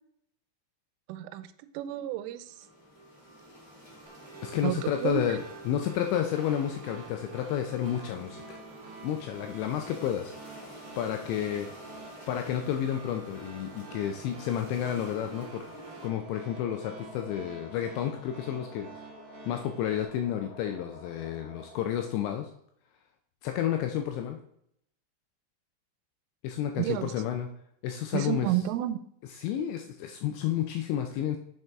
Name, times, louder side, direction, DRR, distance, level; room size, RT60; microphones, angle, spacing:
voice 1, 1.1-1.5 1.7-2.7 4.6-5.4 26.8-27.1 28.1-29.0, right 13 dB, 90° right, 12 dB, 3.1 m, -30 dB
sound 1, 2.3-16.1, right 1 dB, 10° left, 1.7 m, -48 dB
sound 2, 4.1-20.1, right 5 dB, 65° right, 3.4 m, -49 dB
voice 2, 4.4-8.6 9.0-11.7 12.3-15.6 16.0-18.9 19.5-22.5 23.4-24.4 26.4-27.5 27.8-28.5 29.4-31.4, left 10 dB, 85° left, 5 dB, 2.6 m, -31 dB
sound 3, 10.0-22.5, left 1 dB, 60° left, 2.7 m, -51 dB
7.4 x 5.4 x 3.5 m, 0.71 s
omnidirectional pair, 5.6 m